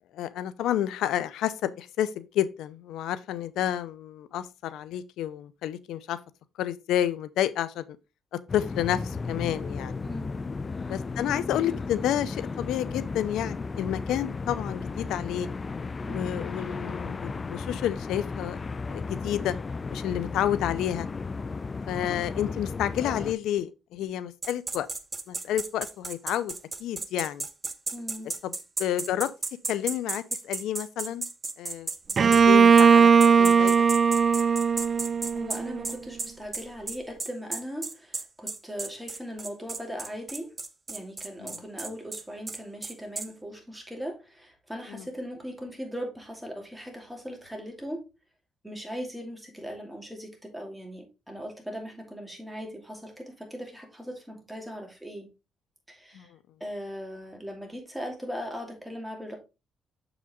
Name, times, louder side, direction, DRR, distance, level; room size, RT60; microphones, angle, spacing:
voice 1, 0.1-6.2 6.6-8.0 8.3-10.0 10.8-15.5 16.1-18.6 18.9-19.6 19.9-21.1 21.9-24.9 25.3-27.5 28.4-28.5 28.8-29.3 29.7-31.3 31.6-31.9 32.3-33.8 41.4-41.6 44.9-45.1 56.1-56.3, left 11 dB, 85° left, 0.4 m, -30 dB
sound 1, 8.5-23.3, left 4 dB, 30° left, 0.4 m, -34 dB
voice 2, 10.0-10.4 16.0-16.3 27.9-28.3 35.3-40.5 40.9-48.0 48.6-55.3 55.9-56.3 56.6-59.4, equal, 5° right, 2.6 m, -39 dB
sound 2, 24.4-32.4 32.8-32.9 33.2-43.3, right 3 dB, 25° right, 0.8 m, -34 dB
Bowed string instrument, 32.2-35.9, right 6 dB, 45° right, 0.3 m, -19 dB
6.9 x 5.0 x 3.6 m
cardioid pair, 90°, 0 cm